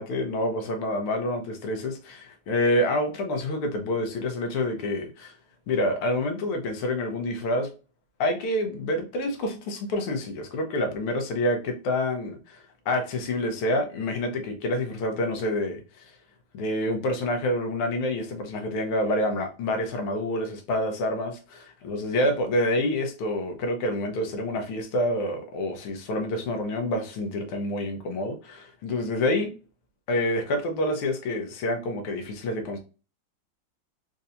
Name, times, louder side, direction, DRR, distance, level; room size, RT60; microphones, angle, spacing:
voice 1, 0.0-5.3 5.7-7.7 8.2-12.6 12.9-16.1 16.5-29.5 30.1-32.8, left 1 dB, 85° left, 1.7 m, -27 dB
4.5 x 2.7 x 2.6 m
omnidirectional pair, 2.3 m